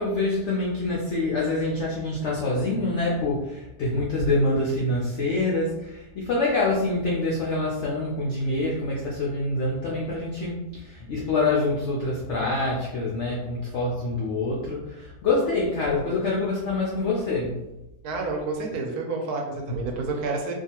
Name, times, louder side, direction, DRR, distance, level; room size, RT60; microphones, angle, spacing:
voice 1, 0.0-17.6 19.7-19.8, left 2 dB, 75° left, -4 dB, 0.6 m, -26 dB
voice 2, 18.0-20.5, right 3 dB, 75° right, 1 dB, 1.0 m, -29 dB
2.6 x 2.3 x 2.8 m, 0.96 s
omnidirectional pair, 1.8 m